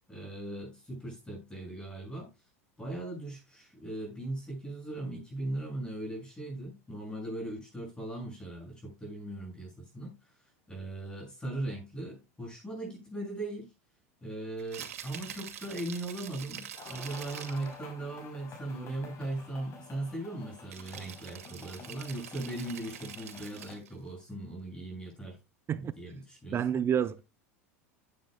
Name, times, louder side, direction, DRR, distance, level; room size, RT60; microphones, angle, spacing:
voice 1, 0.1-2.3 2.8-10.3 10.7-13.7 14.2-25.4 25.7-26.8, right 1 dB, 10° left, 7.0 m, -39 dB
Rattle (instrument), 14.6-17.8 20.7-23.9, right 9 dB, 75° right, 2.1 m, -45 dB
sound 1, 16.8-23.7, left 4 dB, 35° left, 5.5 m, -50 dB
voice 2, 26.5-27.2, right 8 dB, 30° right, 0.6 m, -28 dB
15.5 x 8.9 x 2.2 m
hypercardioid pair, 90°, 8 cm